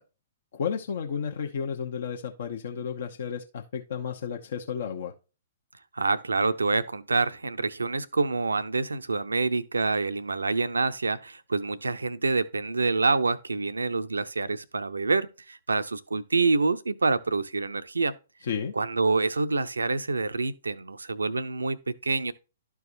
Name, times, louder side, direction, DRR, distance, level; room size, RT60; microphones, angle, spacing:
voice 1, 0.5-5.1 18.4-18.7, left 7 dB, 55° left, 0.9 m, -32 dB
voice 2, 5.9-18.1 18.8-22.3, right 3 dB, 80° right, 0.6 m, -27 dB
12.5 x 4.7 x 2.6 m
figure-of-eight pair, 120°, 0 cm